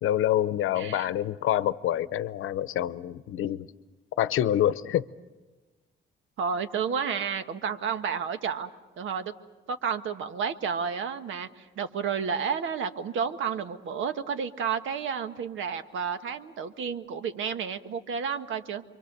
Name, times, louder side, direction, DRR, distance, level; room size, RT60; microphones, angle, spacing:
voice 1, 0.0-3.7 4.2-5.1, left 12 dB, 90° left, 15 dB, 0.8 m, -26 dB
voice 2, 0.8-1.1 6.4-8.7 9.0-9.3 9.7-18.8, right 6 dB, 75° right, 9 dB, 1.4 m, -31 dB
28.5 x 24.0 x 6.8 m, 1.2 s
cardioid pair, 165°, 20 cm